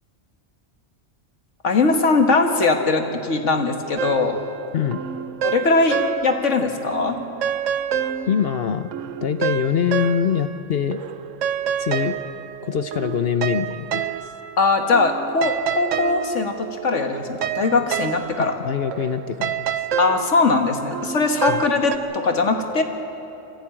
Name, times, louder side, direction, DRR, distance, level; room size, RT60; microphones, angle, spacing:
voice 1, 1.6-4.4 5.4-7.2 14.6-18.5 20.0-22.8, left 3 dB, 75° left, 4 dB, 1.9 m, -20 dB
sound 1, 4.0-6.6 6.9-10.6 10.9-22.0, right 9 dB, 80° right, 1.1 m, -28 dB
voice 2, 8.3-8.9 9.2-11.0 11.8-12.2 12.6-14.3 18.4-19.8 21.5-21.6, left 8 dB, 60° left, 11 dB, 0.9 m, -24 dB
24.5 x 15.0 x 8.8 m, 2.8 s
omnidirectional pair, 1.3 m